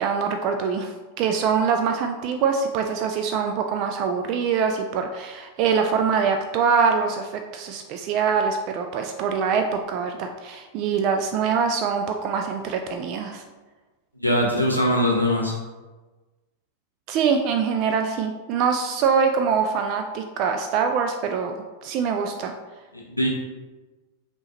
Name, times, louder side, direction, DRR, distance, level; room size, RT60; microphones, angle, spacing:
voice 1, 0.0-13.4 17.1-21.5 21.8-22.5, right 6 dB, 40° right, 5 dB, 0.3 m, -24 dB
voice 2, 14.2-15.5 23.1-23.3, equal, 90° right, -2 dB, 0.9 m, -21 dB
5.3 x 2.9 x 2.9 m, 1.2 s
figure-of-eight pair, 90°, 0 cm